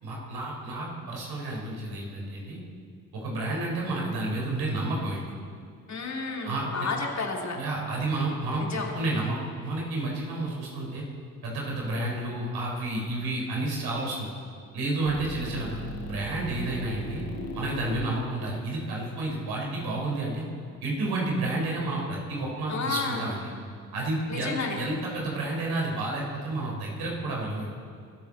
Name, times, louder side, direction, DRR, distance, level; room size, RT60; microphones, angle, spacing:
voice 1, 0.0-2.6 3.1-5.2 6.4-6.9 7.5-8.6 8.9-11.0 11.4-14.3 14.7-15.8 16.0-17.2 17.5-20.4 20.8-23.4 23.9-27.7, right 2 dB, 55° right, -2 dB, 4.6 m, -30 dB
voice 2, 5.9-7.6 8.6-8.9 22.7-23.2 24.3-24.8, left 4 dB, 40° left, 0 dB, 3.0 m, -31 dB
sound 1, 15.0-20.2, equal, 55° left, 2.1 m, -39 dB
23.5 x 13.5 x 4.3 m, 2.3 s
figure-of-eight pair, 45°, 44 cm